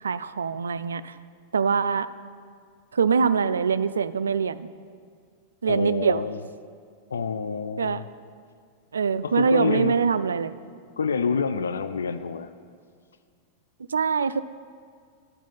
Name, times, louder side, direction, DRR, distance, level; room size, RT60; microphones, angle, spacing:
voice 1, 0.0-1.1 1.5-2.1 2.9-4.7 5.6-6.2 7.8-8.0 8.9-10.5 13.9-14.4, right 6 dB, 70° right, 15 dB, 0.3 m, -23 dB
voice 2, 5.7-6.4 7.1-8.0 9.2-10.0 11.0-12.5, left 5 dB, 70° left, 11 dB, 0.3 m, -27 dB
10.5 x 7.2 x 5.7 m, 2.1 s
figure-of-eight pair, 90°, 0 cm